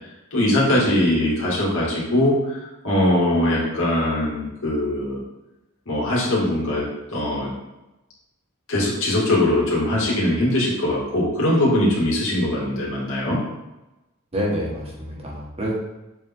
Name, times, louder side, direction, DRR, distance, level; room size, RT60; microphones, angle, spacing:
voice 1, 0.3-2.6 2.8-5.2 5.9-6.8 7.1-7.5 8.7-13.4, left 1 dB, 65° left, -5 dB, 2.4 m, -21 dB
voice 2, 10.0-10.3 14.3-15.8, equal, 30° right, -4 dB, 1.6 m, -28 dB
7.6 x 4.3 x 3.7 m, 0.98 s
head